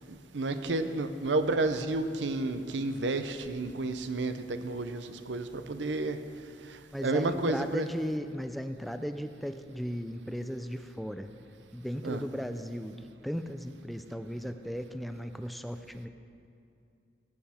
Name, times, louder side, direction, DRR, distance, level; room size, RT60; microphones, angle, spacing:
voice 1, 0.1-6.2 7.0-7.9 12.0-12.2, right 2 dB, 90° right, 9 dB, 0.7 m, -31 dB
voice 2, 6.9-11.3 11.7-16.1, equal, ahead, 9 dB, 0.3 m, -36 dB
17.0 x 8.5 x 4.3 m, 2.6 s
head